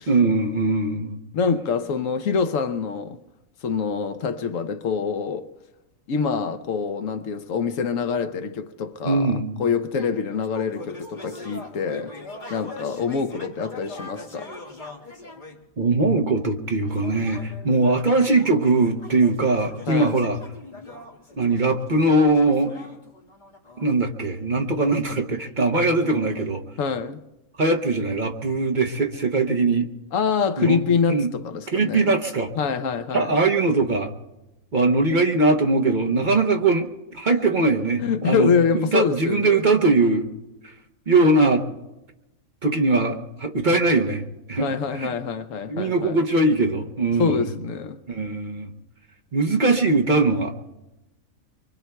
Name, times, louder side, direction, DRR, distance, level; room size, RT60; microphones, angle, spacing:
voice 1, 0.1-1.2 9.0-9.6 15.8-20.4 21.4-22.7 23.8-26.6 27.6-29.9 30.6-30.8 31.1-31.3 31.7-32.5 33.1-34.1 34.7-36.9 37.1-38.5 38.7-40.3 40.6-40.7 41.1-41.7 42.6-45.1 45.7-47.5 48.1-48.7 49.3-50.5, right 2 dB, 40° right, 0.9 m, -21 dB
voice 2, 1.3-3.2 3.6-5.5 6.1-12.2 12.5-14.5 19.9-20.2 26.8-27.2 30.1-32.0 32.6-33.3 38.0-39.6 44.6-46.2 47.2-48.0, left 6 dB, 75° left, 1.1 m, -25 dB
sound 1, 9.9-15.6 16.8-24.0, left 2 dB, 35° left, 1.7 m, -42 dB
24.5 x 24.0 x 2.3 m
omnidirectional pair, 1.4 m